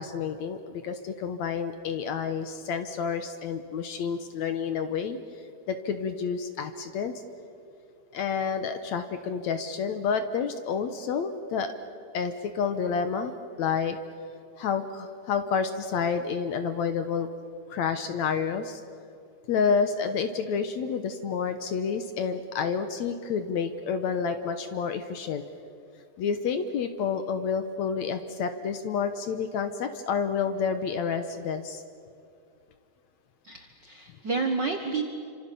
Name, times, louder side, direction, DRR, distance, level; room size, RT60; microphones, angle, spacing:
voice 1, 0.0-7.2 8.1-11.7 12.1-14.0 14.6-17.3 17.7-18.8 19.5-25.4 26.2-31.8, left 6 dB, 65° left, 9 dB, 2.0 m, -29 dB
voice 2, 33.4-35.0, right 4 dB, 50° right, 4 dB, 1.3 m, -30 dB
28.5 x 25.5 x 6.9 m, 2.5 s
omnidirectional pair, 3.9 m